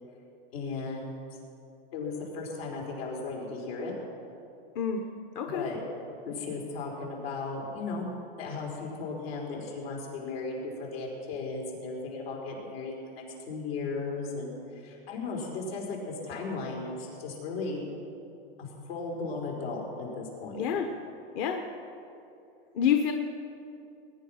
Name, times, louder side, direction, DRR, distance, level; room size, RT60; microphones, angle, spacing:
voice 1, 0.5-1.1 1.9-3.9 5.5-5.8 6.2-8.1 8.4-17.9 18.6-20.6, left 3 dB, 80° left, -2 dB, 4.9 m, -36 dB
voice 2, 5.3-5.7 20.6-20.9 21.3-21.6 22.7-23.1, left 8 dB, 40° left, 4 dB, 1.0 m, -27 dB
21.0 x 10.0 x 5.9 m, 2.7 s
supercardioid pair, 145°, 29 cm